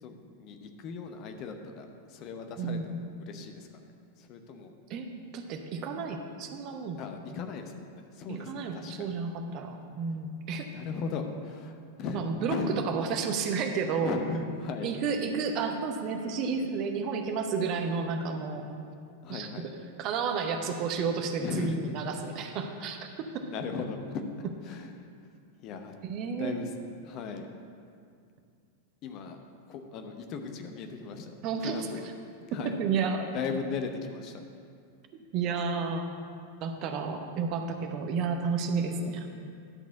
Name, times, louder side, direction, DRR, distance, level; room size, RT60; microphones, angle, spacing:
voice 1, 0.0-3.7 4.2-4.7 7.0-9.2 10.7-12.2 12.5-12.7 14.0-14.9 19.2-19.7 21.4-21.8 23.4-24.2 24.6-25.1 25.6-25.9 26.3-26.7 27.0-27.5 29.0-29.4 29.7-31.3 31.6-32.1 32.5-32.8 33.3-34.4, left 5 dB, 40° left, 5 dB, 0.8 m, -37 dB
voice 2, 2.6-2.9 4.9-5.1 5.3-7.0 8.3-10.7 12.1-12.6 12.8-14.1 14.8-18.7 19.3-19.5 20.0-23.0 23.3-23.4 26.0-26.6 31.4-31.7 32.8-33.3 35.3-36.1 36.6-39.3, right 5 dB, 40° right, 5 dB, 0.8 m, -31 dB
11.0 x 4.1 x 6.8 m, 2.3 s
figure-of-eight pair, 90°, 0 cm